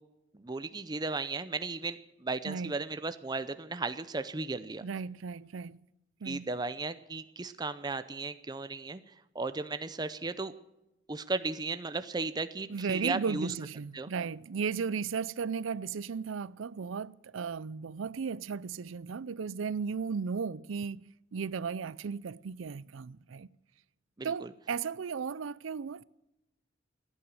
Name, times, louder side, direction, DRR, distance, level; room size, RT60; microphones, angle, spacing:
voice 1, 0.3-4.9 6.2-9.0 9.3-10.5 11.1-13.5 13.9-14.1 24.2-24.5, right 3 dB, 20° right, 0.6 m, -35 dB
voice 2, 4.8-5.8 6.2-6.5 12.7-21.0 21.3-23.5 24.2-26.0, right 5 dB, 85° right, 0.5 m, -35 dB
16.0 x 9.9 x 9.0 m
head